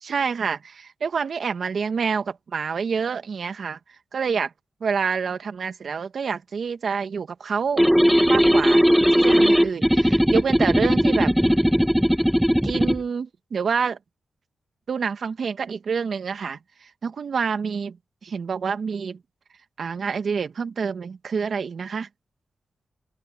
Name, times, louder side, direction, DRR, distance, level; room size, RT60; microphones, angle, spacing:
voice 1, 0.0-3.8 4.1-4.5 4.8-7.8 8.3-8.8 9.1-11.3 12.6-14.0 14.9-16.6 17.0-18.0 18.2-19.2 19.8-22.1, right 6 dB, 65° right, 2.0 m, -27 dB
sound 1, 7.8-13.0, equal, ahead, 1.6 m, -18 dB
open air
cardioid pair, 80°, 0 cm